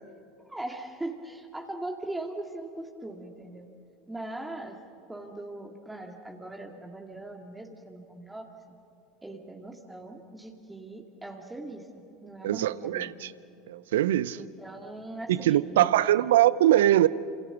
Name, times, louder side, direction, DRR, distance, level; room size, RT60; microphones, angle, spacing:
voice 1, 0.4-3.7 4.1-4.8 5.1-8.5 9.2-13.2 14.3-16.1, right 2 dB, 10° right, 1 dB, 2.4 m, -40 dB
voice 2, 12.4-13.3 13.7-14.4 15.3-17.1, right 13 dB, 75° right, 18 dB, 0.7 m, -22 dB
28.5 x 27.5 x 6.1 m, 2.7 s
hypercardioid pair, 80°, 0 cm